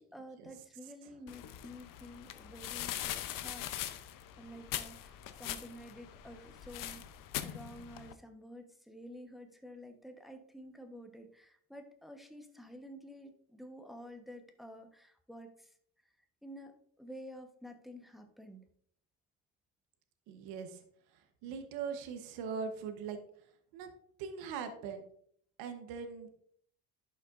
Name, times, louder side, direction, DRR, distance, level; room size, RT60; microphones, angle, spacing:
voice 1, 0.0-7.0 7.4-15.8 16.4-18.6, equal, ahead, 5 dB, 1.0 m, -51 dB
sound 1, 1.3-8.1, left 12 dB, 60° left, 0.7 m, -42 dB
voice 2, 20.3-20.8 21.4-23.2 23.7-23.9 24.2-25.0 25.6-26.3, right 6 dB, 85° right, 7 dB, 1.1 m, -41 dB
11.5 x 5.6 x 2.5 m, 0.64 s
supercardioid pair, 85°, 36 cm